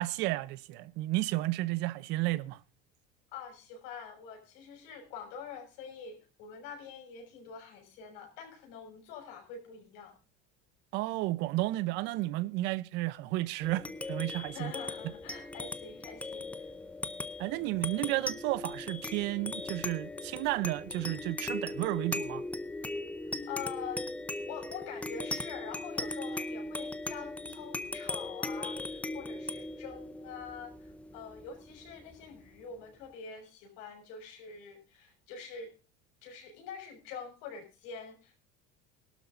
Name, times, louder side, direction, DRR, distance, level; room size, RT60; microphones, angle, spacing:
voice 1, 0.0-2.6 10.9-14.7 17.4-22.4, right 18 dB, 60° right, 0.7 m, -32 dB
voice 2, 3.3-10.2 14.5-16.7 23.5-24.1 24.5-35.7 36.2-38.4, left 6 dB, 75° left, 6.5 m, -45 dB
sound 1, 13.6-32.5, left 2 dB, 5° left, 0.6 m, -39 dB
20.0 x 12.5 x 2.6 m
cardioid pair, 155°, 20 cm